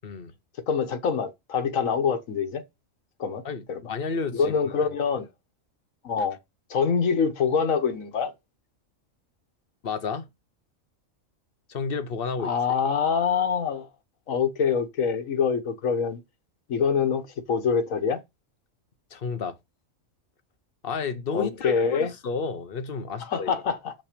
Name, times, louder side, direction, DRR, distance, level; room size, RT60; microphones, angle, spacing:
voice 1, 0.0-0.3 3.4-4.6 6.2-6.3 9.8-10.3 11.7-12.5 19.1-19.6 20.8-23.5, left 5 dB, 50° left, 1.0 m, -31 dB
voice 2, 0.7-2.6 3.2-3.8 4.3-5.3 6.0-6.4 6.7-8.3 12.4-13.9 14.3-16.2 16.7-18.2 21.3-22.1 23.2-23.9, left 6 dB, 85° left, 1.5 m, -25 dB
6.6 x 5.9 x 5.1 m
omnidirectional pair, 1.4 m